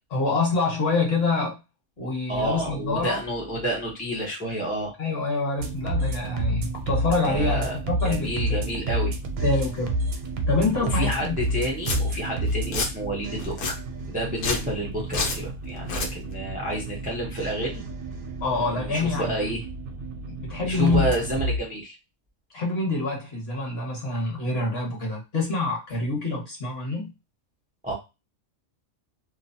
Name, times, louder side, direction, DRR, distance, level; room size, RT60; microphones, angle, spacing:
voice 1, 0.1-1.6 2.0-3.2 5.0-8.6 9.4-10.0 10.5-11.4 18.4-19.4 20.3-21.1 22.5-27.1, left 3 dB, 50° left, -1 dB, 1.3 m, -26 dB
voice 2, 2.3-4.9 7.2-7.8 8.0-9.2 10.9-13.5 14.1-17.8 18.5-19.7 20.6-22.0 27.8-27.9, right 1 dB, 15° right, -2 dB, 0.3 m, -29 dB
sound 1, 5.6-21.6, right 1 dB, 80° right, 1.0 m, -30 dB
Domestic sounds home sounds, 11.4-11.5 11.8-12.0 12.5-12.9 13.4-13.7 14.3-14.7 15.1-15.4 15.8-16.1, left 3 dB, 80° left, 1.1 m, -28 dB
2.8 x 2.0 x 2.6 m, 0.26 s
omnidirectional pair, 1.5 m